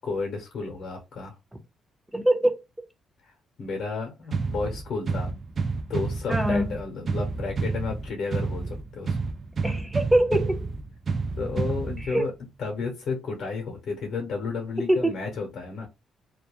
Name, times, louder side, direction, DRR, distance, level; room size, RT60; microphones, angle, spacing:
voice 1, 0.0-1.3 3.6-5.3 5.9-9.2 11.4-12.3 12.6-15.9, left 4 dB, 60° left, 0.8 m, -32 dB
voice 2, 2.1-2.6 6.3-6.8 9.6-10.7 12.0-12.3 14.9-15.2, right 1 dB, 5° right, 0.8 m, -23 dB
sound 1, 4.3-12.3, right 4 dB, 45° right, 0.3 m, -30 dB
2.3 x 2.1 x 3.0 m
cardioid pair, 90°, 0 cm